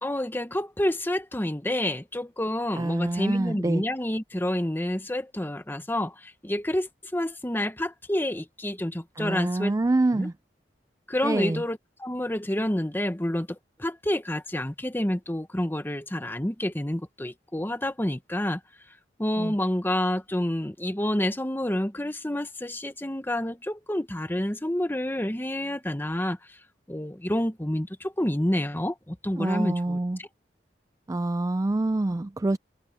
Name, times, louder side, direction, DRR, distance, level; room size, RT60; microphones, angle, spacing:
voice 1, 0.0-9.7 10.1-10.3 11.1-18.6 19.2-26.6 26.9-30.3, left 1 dB, 10° left, 1.1 m, -29 dB
voice 2, 2.8-3.8 9.2-10.3 11.2-11.6 19.4-19.5 29.4-30.2 31.1-32.6, right 2 dB, 20° right, 0.3 m, -26 dB
head